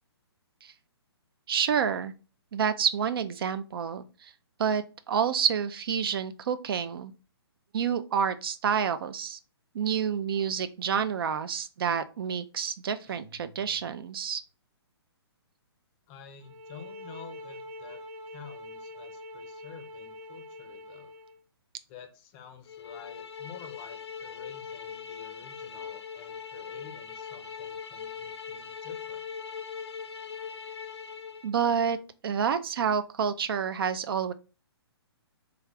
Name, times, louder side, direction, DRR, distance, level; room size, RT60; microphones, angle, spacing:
voice 1, 1.5-2.1 2.5-4.3 4.6-7.1 7.7-9.4 9.7-14.4 31.4-32.0 32.2-34.3, right 7 dB, 60° right, 11 dB, 0.4 m, -28 dB
sound 1, 13.0-14.4, right 1 dB, 15° right, 0.8 m, -54 dB
voice 2, 16.1-18.0 18.3-21.1 21.9-29.2, left 7 dB, 25° left, 6 dB, 0.5 m, -50 dB
sound 2, 16.4-21.4, left 1 dB, 35° right, 1.1 m, -44 dB
sound 3, 22.7-31.5, left 6 dB, 80° left, 0.5 m, -41 dB
3.5 x 2.4 x 3.2 m, 0.34 s
hypercardioid pair, 140°, 14 cm